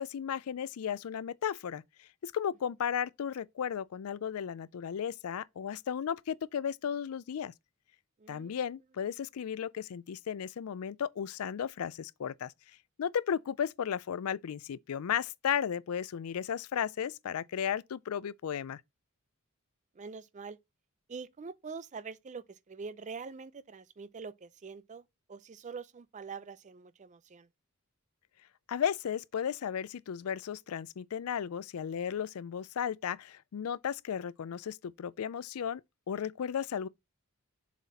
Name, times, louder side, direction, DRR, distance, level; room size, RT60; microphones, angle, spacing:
voice 1, 0.0-1.8 2.2-7.5 8.3-12.5 13.0-18.8 28.7-35.8 36.1-36.9, left 8 dB, 75° left, 0.4 m, -34 dB
voice 2, 8.2-8.6 19.9-20.6 21.1-27.5, right 5 dB, 35° right, 0.4 m, -45 dB
7.3 x 4.0 x 4.1 m
head